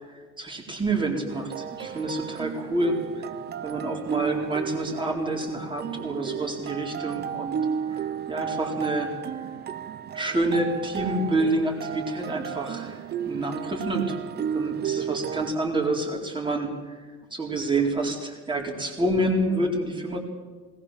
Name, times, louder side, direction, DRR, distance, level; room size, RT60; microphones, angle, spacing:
voice 1, 0.1-3.3 3.6-7.6 7.9-8.0 8.3-9.4 10.1-14.2 14.5-17.0 17.3-20.2, right 2 dB, 15° right, 1 dB, 4.2 m, -28 dB
sound 1, 1.3-15.5, right 8 dB, 35° right, 0.7 m, -33 dB
21.0 x 19.0 x 7.4 m, 1.4 s
cardioid pair, 150°, 30 cm